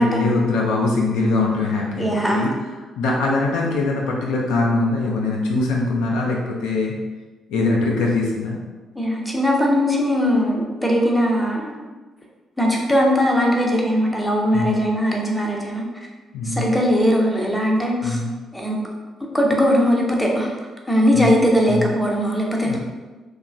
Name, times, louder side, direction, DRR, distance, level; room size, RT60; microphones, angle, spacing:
voice 1, 0.0-2.5 3.0-6.9 7.5-8.6 14.5-14.8 16.3-16.7 18.0-18.3 21.1-21.4 21.7-21.9 22.6-22.8, left 3 dB, 70° left, -2 dB, 0.4 m, -22 dB
voice 2, 2.0-2.5 9.0-11.7 12.6-15.9 16.4-18.2 18.5-18.8 19.3-20.5 20.9-22.8, equal, 5° left, -1 dB, 0.6 m, -20 dB
2.9 x 2.1 x 2.4 m, 1.3 s
figure-of-eight pair, 40°, 0 cm